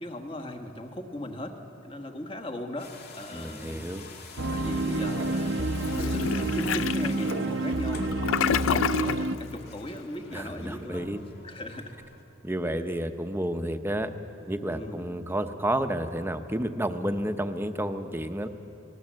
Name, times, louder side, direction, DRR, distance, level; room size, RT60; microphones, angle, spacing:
voice 1, 0.0-4.0 4.5-8.2 8.5-11.2 11.4-11.9 14.7-15.1, left 1 dB, 30° left, 5 dB, 1.5 m, -38 dB
Shower Turning On, 2.8-12.2, left 4 dB, 55° left, 2.4 m, -48 dB
voice 2, 3.3-4.1 10.3-11.2 12.4-14.1 14.5-18.5, right 1 dB, 10° right, 7 dB, 0.8 m, -30 dB
sound 1, 4.4-9.4, right 2 dB, 70° right, 0.8 m, -28 dB
Toilet flush, 5.8-9.3, left 8 dB, 90° left, 0.4 m, -29 dB
24.0 x 19.0 x 7.5 m, 2.8 s
head